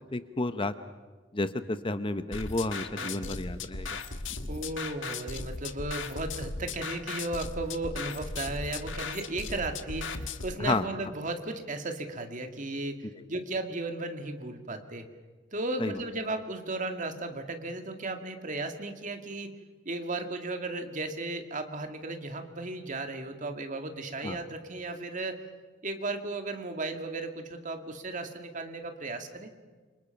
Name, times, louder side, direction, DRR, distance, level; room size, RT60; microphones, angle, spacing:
voice 1, 0.1-0.7 1.3-4.0 4.4-4.5 10.6-10.9 15.8-15.9 24.2-24.4, left 2 dB, 25° left, 11 dB, 0.9 m, -31 dB
sound 1, 2.3-10.5, left 4 dB, 75° left, 1.6 m, -37 dB
voice 2, 3.0-3.4 4.5-15.1 15.5-19.5 19.9-25.4 25.8-29.5, right 2 dB, 40° right, 6 dB, 2.3 m, -35 dB
29.0 x 26.0 x 5.9 m, 1.4 s
head